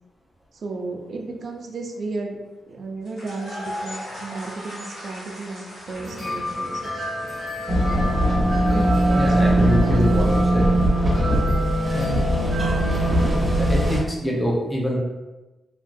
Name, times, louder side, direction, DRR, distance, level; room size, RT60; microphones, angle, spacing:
voice 1, 0.5-2.4 2.7-7.1 8.3-10.3, right 3 dB, 60° right, 2 dB, 0.4 m, -34 dB
sound 1, 3.1-9.0, left 1 dB, 80° left, 1.5 m, -39 dB
sound 2, 5.9-13.9, equal, 60° left, 1.5 m, -31 dB
sound 3, 7.7-14.0, right 1 dB, 30° right, 0.8 m, -20 dB
voice 2, 9.1-10.6 11.9-12.2 12.6-12.9 13.6-15.0, equal, 5° left, -3 dB, 0.6 m, -25 dB
2.9 x 2.4 x 2.6 m, 1.1 s
cardioid pair, 90°, 0 cm